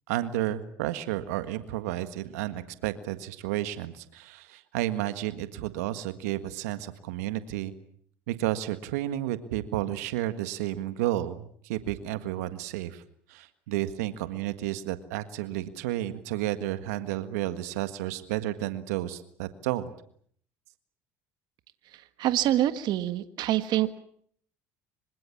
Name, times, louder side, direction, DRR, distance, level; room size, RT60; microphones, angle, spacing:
voice 1, 0.1-7.7 8.3-13.0 13.3-19.9, right 14 dB, 85° right, 11 dB, 1.7 m, -32 dB
voice 2, 21.9-24.0, right 13 dB, 60° right, 11 dB, 1.6 m, -26 dB
25.5 x 25.5 x 7.3 m, 0.62 s
supercardioid pair, 85°, 8 cm